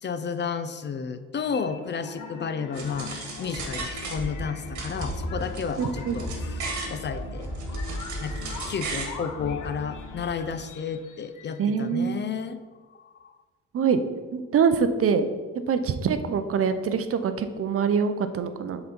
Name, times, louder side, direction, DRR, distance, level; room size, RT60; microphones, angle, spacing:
voice 1, 0.0-6.6 6.9-7.5 8.2-8.4 8.7-12.6 12.9-13.3, left 6 dB, 35° left, 11 dB, 0.5 m, -32 dB
sound 1, 1.3-11.9, left 5 dB, 85° left, 0.8 m, -42 dB
sound 2, 2.7-4.5 4.7-7.0 7.4-9.2, right 3 dB, 70° right, 1.5 m, -36 dB
Run, 3.5-10.5, equal, 20° right, 1.1 m, -36 dB
voice 2, 5.8-6.2 11.6-12.2 13.7-14.0 14.3-15.3 15.7-18.8, right 6 dB, 50° right, 10 dB, 0.6 m, -24 dB
7.5 x 3.9 x 4.4 m, 1.4 s
cardioid pair, 90°, 30 cm